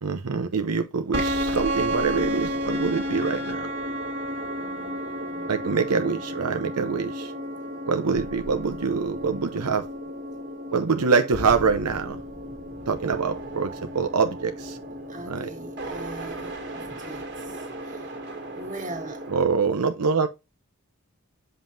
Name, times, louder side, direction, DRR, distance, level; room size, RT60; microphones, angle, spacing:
voice 1, 0.0-3.7 5.5-7.3 7.9-9.9 10.7-12.2 12.9-14.8 15.2-15.5 19.3-20.3, right 5 dB, 90° right, 0.8 m, -25 dB
sound 1, 1.1-19.5, equal, 50° right, 1.9 m, -33 dB
voice 2, 4.3-5.8 6.1-6.4 15.1-18.1 18.5-19.2, right 2 dB, 35° right, 2.1 m, -41 dB
7.4 x 5.5 x 2.6 m
head